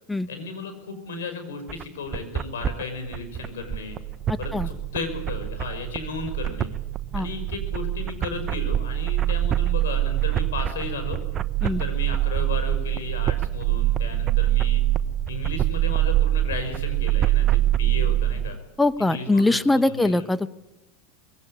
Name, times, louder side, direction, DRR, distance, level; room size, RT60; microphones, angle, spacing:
voice 1, 0.3-4.0 4.4-6.7 7.2-11.2 11.6-14.8 15.3-18.6 19.0-20.3, left 4 dB, 80° left, 7 dB, 5.7 m, -34 dB
sound 1, 1.7-17.8, right 8 dB, 35° right, 0.9 m, -31 dB
sound 2, 3.2-18.5, right 14 dB, 65° right, 1.2 m, -25 dB
voice 2, 4.3-4.7 7.1-7.3 11.6-11.8 18.8-20.5, left 2 dB, 10° left, 15 dB, 1.0 m, -22 dB
21.5 x 17.5 x 9.6 m, 0.97 s
hypercardioid pair, 95°, 0 cm